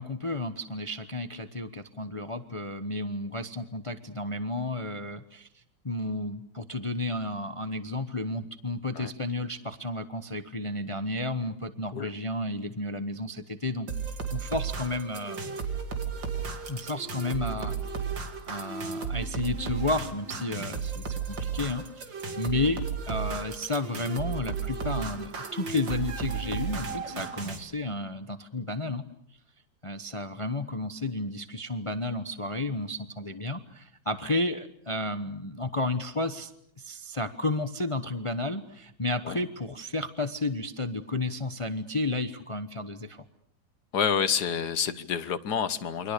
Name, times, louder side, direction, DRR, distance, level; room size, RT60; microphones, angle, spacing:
voice 1, 0.0-5.5 5.8-13.9 14.3-15.6 16.7-17.8 18.5-22.0 22.4-29.0 29.8-36.5 36.8-43.2, left 2 dB, 25° left, 10 dB, 0.8 m, -32 dB
sound 1, 13.9-27.6, right 5 dB, 80° right, 3.1 m, -34 dB
voice 2, 43.9-46.1, left 7 dB, 60° left, 12 dB, 1.7 m, -28 dB
29.0 x 24.5 x 6.7 m, 0.70 s
omnidirectional pair, 2.0 m